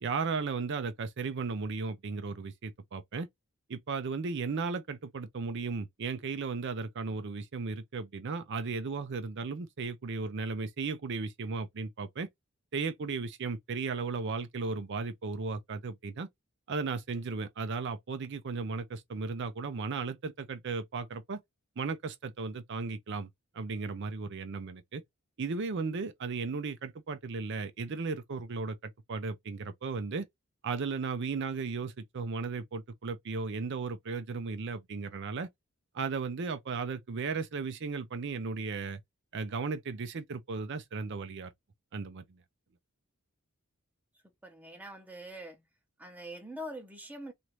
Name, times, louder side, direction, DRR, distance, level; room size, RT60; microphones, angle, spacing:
voice 1, 0.0-3.3 3.7-12.3 12.7-16.3 16.7-21.4 21.8-23.3 23.5-25.0 25.4-30.3 30.6-35.5 35.9-39.0 39.3-41.5 41.9-42.4, right 4 dB, 50° right, 0.5 m, -35 dB
voice 2, 44.4-45.6 46.0-47.3, equal, 5° right, 0.7 m, -44 dB
3.0 x 2.5 x 3.0 m
head